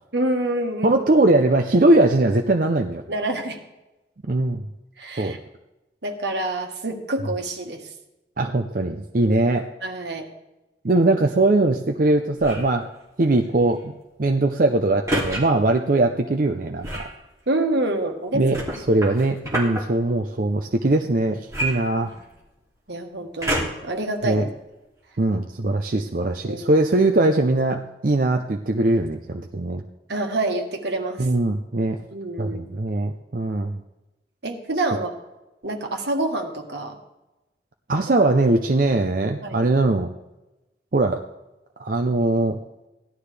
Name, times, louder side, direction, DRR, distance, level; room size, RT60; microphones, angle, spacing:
voice 1, 0.1-1.0 3.1-3.6 5.0-5.4 6.0-7.9 9.8-10.3 17.5-18.5 18.9-19.0 22.0-22.1 22.9-24.5 26.4-26.7 30.1-31.3 32.1-32.6 34.4-35.1 35.6-37.0 39.4-39.6, right 2 dB, 75° right, 4 dB, 1.6 m, -27 dB
voice 2, 0.8-3.0 4.3-4.6 5.2-5.4 8.4-9.7 10.8-12.9 13.2-13.9 14.2-17.0 18.3-18.6 18.9-22.1 24.2-24.4 25.2-29.8 31.2-32.0 32.4-33.8 37.9-40.1 40.9-41.2 41.8-42.6, right 2 dB, 50° right, 3 dB, 0.6 m, -21 dB
sound 1, 12.4-12.8 15.1-15.4 16.8-17.2 18.5-19.8 21.5-22.5 23.4-23.9 24.6-24.7, right 1 dB, 20° right, 2.7 m, -28 dB
16.5 x 11.5 x 3.4 m, 1.0 s
head